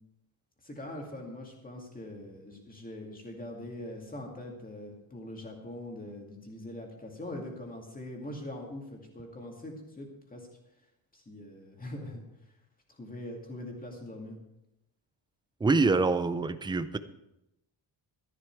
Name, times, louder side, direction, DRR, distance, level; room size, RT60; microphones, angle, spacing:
voice 1, 0.6-10.5 11.1-12.2 13.0-14.4, left 1 dB, 20° left, 1 dB, 2.3 m, -42 dB
voice 2, 15.6-17.0, right 3 dB, 10° right, 12 dB, 0.4 m, -25 dB
13.0 x 11.0 x 4.7 m, 0.86 s
wide cardioid pair, 170°, 44 cm